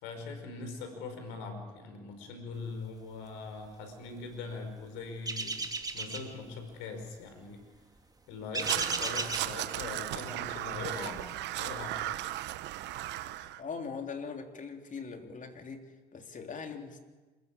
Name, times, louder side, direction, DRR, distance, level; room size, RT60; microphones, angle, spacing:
voice 1, 0.0-5.6 5.9-7.6 8.3-12.4, left 4 dB, 75° left, 5.3 m, -42 dB
sound 1, 5.3-6.3 8.5-9.5, right 3 dB, 20° right, 2.9 m, -34 dB
Crow, 8.6-13.6, right 15 dB, 65° right, 1.0 m, -36 dB
voice 2, 13.6-17.0, left 5 dB, 40° left, 3.3 m, -41 dB
27.0 x 15.0 x 8.8 m
hypercardioid pair, 60°, 19 cm